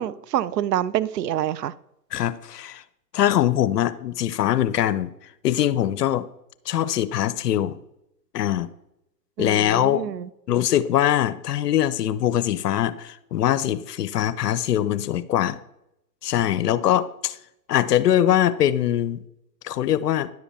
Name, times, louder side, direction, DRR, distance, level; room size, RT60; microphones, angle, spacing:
voice 1, 0.0-1.7 9.4-10.3, right 11 dB, 75° right, 17 dB, 0.5 m, -26 dB
voice 2, 2.1-2.8 3.1-5.1 5.4-6.3 6.7-7.8 8.3-8.7 9.4-10.0 10.5-15.6 16.2-17.4 17.7-19.2 19.6-20.3, left 11 dB, 70° left, 15 dB, 0.7 m, -22 dB
10.5 x 4.9 x 3.4 m, 0.83 s
hypercardioid pair, 130°, 50 cm